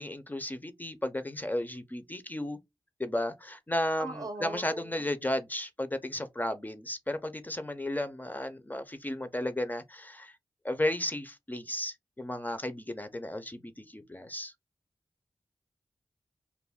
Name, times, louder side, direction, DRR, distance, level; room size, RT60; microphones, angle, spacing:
voice 1, 0.0-2.6 3.0-10.3 10.6-14.5, left 1 dB, 20° left, 0.4 m, -34 dB
voice 2, 4.0-5.0, right 3 dB, 40° right, 0.6 m, -39 dB
2.3 x 2.1 x 3.4 m
cardioid pair, 60°, 9 cm